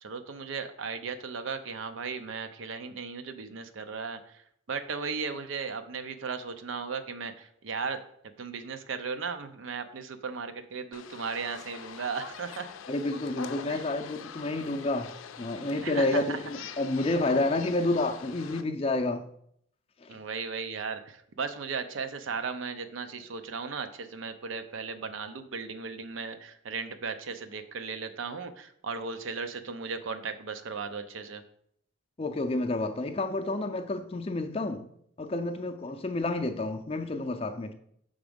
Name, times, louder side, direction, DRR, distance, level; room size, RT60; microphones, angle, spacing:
voice 1, 0.0-4.4 4.7-8.0 8.4-12.7 13.7-13.8 15.8-16.4 20.1-31.4, right 5 dB, 80° right, 0.6 m, -36 dB
sound 1, 10.9-18.6, left 7 dB, 90° left, 0.5 m, -44 dB
voice 2, 12.9-15.1 15.4-19.2 20.0-20.2 32.2-34.9 35.2-37.7, left 2 dB, 30° left, 0.4 m, -29 dB
6.1 x 3.6 x 5.1 m
head